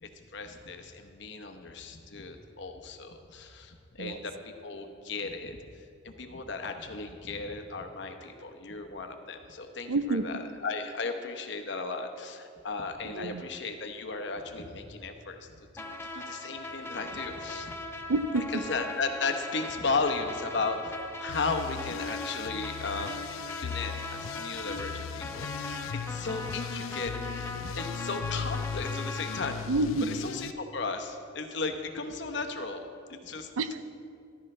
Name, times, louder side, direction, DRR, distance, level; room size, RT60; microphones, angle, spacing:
voice 1, 0.0-17.7 18.5-29.7 30.1-33.5, left 4 dB, 55° left, 5 dB, 0.9 m, -36 dB
voice 2, 9.9-10.4 13.0-13.4 18.1-18.6 29.7-30.1 33.6-33.9, right 2 dB, 85° right, 11 dB, 0.6 m, -29 dB
sound 1, 15.8-29.5, left 2 dB, 10° left, 0.5 m, -39 dB
sound 2, 21.3-30.5, left 6 dB, 75° left, 0.3 m, -38 dB
14.0 x 12.0 x 3.3 m, 2.4 s
head